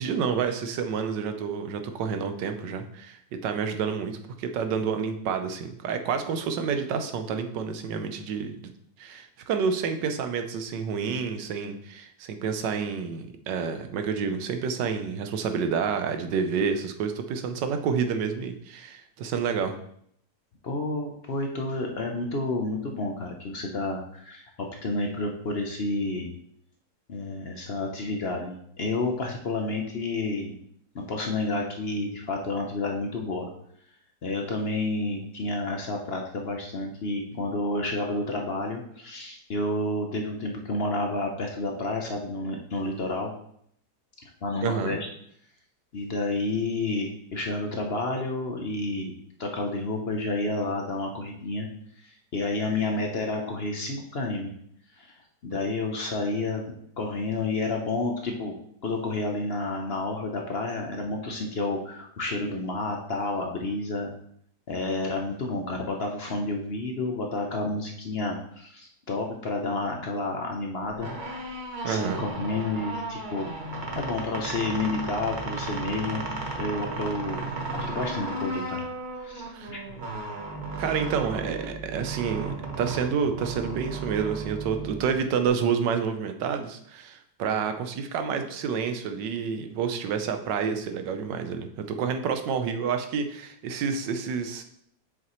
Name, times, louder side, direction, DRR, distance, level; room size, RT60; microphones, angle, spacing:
voice 1, 0.0-3.2 3.4-8.7 9.0-19.8 44.6-45.0 71.8-72.3 79.5-79.7 80.8-94.6, right 6 dB, 85° right, 7 dB, 1.4 m, -29 dB
voice 2, 20.6-24.4 24.8-26.3 27.1-30.6 30.9-33.5 34.2-43.3 44.4-45.1 45.9-49.1 49.4-51.7 52.0-54.5 54.9-55.1 55.4-58.6 58.8-64.1 64.7-71.1 71.9-73.5 73.9-76.3 76.5-77.4 77.7-78.9 79.2-79.8, left 2 dB, 50° left, 2 dB, 0.8 m, -30 dB
sound 1, 70.9-85.5, right 3 dB, 35° right, 0.9 m, -35 dB
7.5 x 6.2 x 3.1 m, 0.68 s
omnidirectional pair, 1.9 m